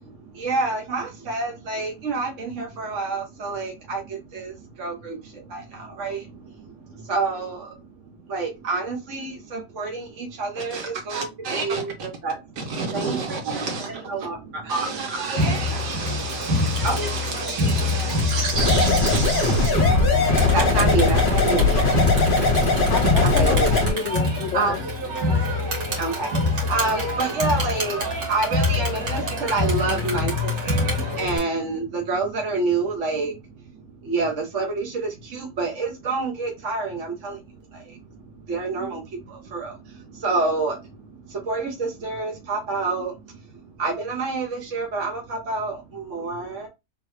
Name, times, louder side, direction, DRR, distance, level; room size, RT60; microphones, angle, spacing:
voice 1, 0.0-12.5 12.9-14.7 16.6-17.1 20.1-21.7 23.2-23.8 24.5-24.8 25.6-37.4 37.7-46.7, right 3 dB, 45° right, 1.3 m, -28 dB
voice 2, 10.6-11.8 12.6-14.3 14.7-19.7, right 4 dB, 65° right, 2.0 m, -30 dB
Crowd, 15.4-31.4, left 2 dB, 80° right, 2.4 m, -25 dB
sound 1, 18.5-23.9, left 3 dB, 35° left, 1.0 m, -20 dB
voice 3, 22.9-24.8, left 5 dB, 80° left, 0.6 m, -29 dB
3.7 x 3.3 x 3.3 m
omnidirectional pair, 1.9 m